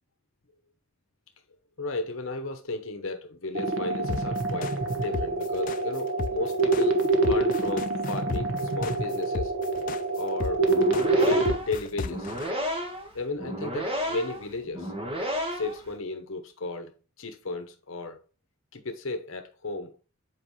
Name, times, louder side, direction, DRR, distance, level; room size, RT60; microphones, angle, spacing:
voice 1, 1.8-7.0 7.3-9.5 10.2-10.7 11.2-12.3 13.1-14.9 15.5-18.2 18.7-20.0, left 3 dB, 65° left, 0.9 m, -34 dB
sound 1, 3.5-11.5, right 2 dB, 65° right, 1.2 m, -26 dB
sound 2, 4.1-12.5, left 4 dB, 40° left, 0.3 m, -34 dB
sound 3, 10.6-15.9, equal, 25° right, 1.4 m, -32 dB
7.7 x 4.8 x 3.1 m
head